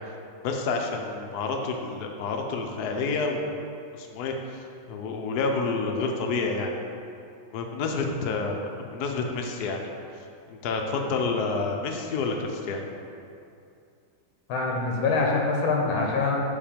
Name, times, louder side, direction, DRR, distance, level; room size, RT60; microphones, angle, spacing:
voice 1, 0.4-3.5 3.9-6.7 7.5-9.8 10.5-12.8, left 4 dB, 70° left, 3 dB, 1.0 m, -29 dB
voice 2, 14.5-16.4, left 3 dB, 90° left, 0 dB, 1.6 m, -24 dB
5.6 x 4.5 x 5.0 m, 2.5 s
omnidirectional pair, 2.2 m